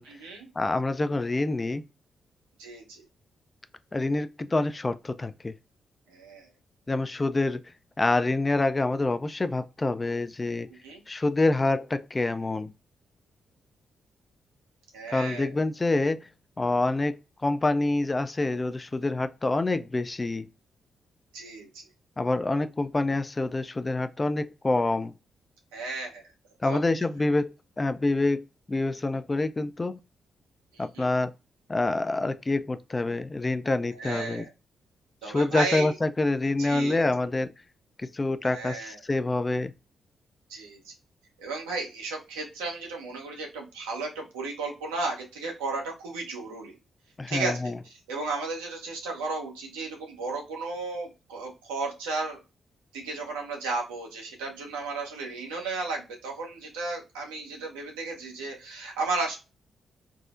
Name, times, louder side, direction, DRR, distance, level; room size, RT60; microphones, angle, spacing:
voice 1, 0.0-0.5 2.6-3.0 6.1-6.5 10.8-11.0 14.9-15.5 21.3-21.8 25.7-26.2 26.6-26.8 30.7-31.1 33.9-34.5 35.2-35.9 36.6-37.0 38.4-39.0 40.5-40.9 41.4-46.7 47.3-47.7 48.1-52.4 52.9-59.4, right 3 dB, 90° right, 0.7 m, -34 dB
voice 2, 0.6-1.8 3.9-5.5 6.9-7.6 8.0-10.7 11.1-12.7 15.1-16.3 16.6-20.5 22.2-25.1 26.6-27.5 27.8-30.0 30.8-31.3 31.7-34.4 35.2-37.5 38.0-39.7 47.2-47.8, left 2 dB, 30° left, 0.3 m, -26 dB
3.6 x 2.0 x 2.4 m
hypercardioid pair, 40°, 0 cm